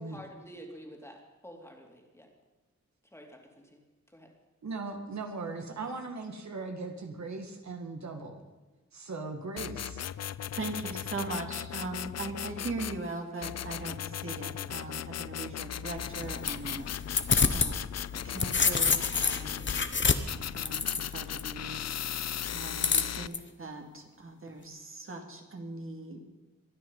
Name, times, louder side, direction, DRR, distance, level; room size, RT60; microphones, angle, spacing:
voice 1, 0.0-2.3 3.1-3.8 4.1-4.3, equal, 10° left, 1 dB, 2.8 m, -49 dB
voice 2, 4.6-8.4 8.9-10.0, right 3 dB, 65° right, 4 dB, 2.0 m, -39 dB
sound 1, 9.6-13.0 13.4-19.9 20.3-23.3, left 10 dB, 60° left, 0.4 m, -37 dB
voice 3, 10.5-16.9 17.5-17.8 18.1-19.8 20.2-21.9 22.5-26.2, right 2 dB, 45° right, 3 dB, 2.4 m, -40 dB
sound 2, 16.0-17.7 18.1-21.4 22.8-23.4, left 5 dB, 40° left, 1.0 m, -28 dB
23.5 x 9.6 x 5.5 m, 1.2 s
wide cardioid pair, 125°, 30 cm